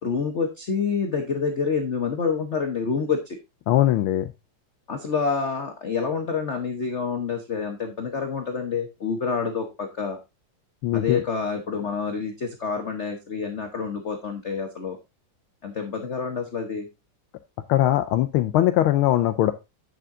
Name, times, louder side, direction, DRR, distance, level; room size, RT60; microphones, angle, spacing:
voice 1, 0.0-3.4 4.9-10.2 10.9-15.0 15.6-16.9, left 5 dB, 45° left, 4 dB, 1.1 m, -27 dB
voice 2, 3.7-4.3 10.8-11.2 17.7-19.5, left 13 dB, 75° left, 8 dB, 1.4 m, -20 dB
8.7 x 6.8 x 3.7 m, 0.24 s
omnidirectional pair, 2.4 m